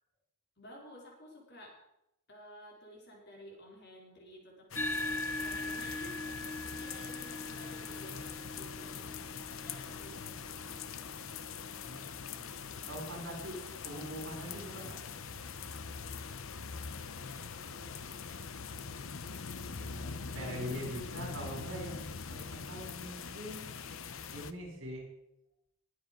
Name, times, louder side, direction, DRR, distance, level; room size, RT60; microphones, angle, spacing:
voice 1, 0.6-1.8 2.3-5.1 5.4-11.1 17.0-19.1, equal, 50° left, -1 dB, 4.2 m, -54 dB
sound 1, 4.7-24.5, left 5 dB, 70° left, 0.9 m, -43 dB
sound 2, 4.7-13.5, left 1 dB, 10° left, 0.5 m, -42 dB
voice 2, 11.8-12.5 12.9-15.0 19.7-23.7 24.3-25.1, equal, 60° right, 1 dB, 5.6 m, -43 dB
21.0 x 8.3 x 5.2 m, 0.82 s
head